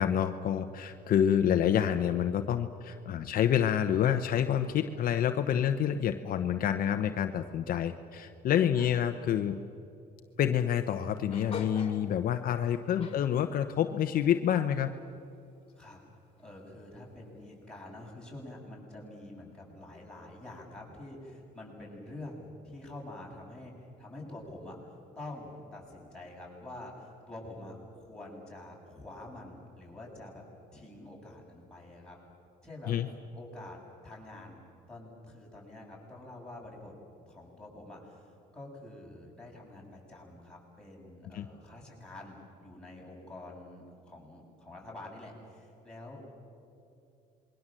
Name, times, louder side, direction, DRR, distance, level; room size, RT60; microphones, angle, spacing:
voice 1, 0.0-9.6 10.4-14.9 32.9-33.1 41.3-41.5, left 9 dB, 60° left, 7 dB, 1.0 m, -28 dB
sound 1, 11.3-12.2 12.5-12.7 13.0-13.6 14.2-14.7 15.1-15.3 15.7-15.8 16.3-16.5, left 5 dB, 35° left, 3.0 m, -43 dB
voice 2, 16.4-30.4 30.7-32.2 32.6-32.9 33.3-33.8 34.0-34.6 34.9-36.9 37.3-46.3, left 1 dB, 5° left, -4 dB, 7.8 m, -47 dB
27.0 x 22.5 x 7.7 m, 2.6 s
cardioid pair, 110°, 17 cm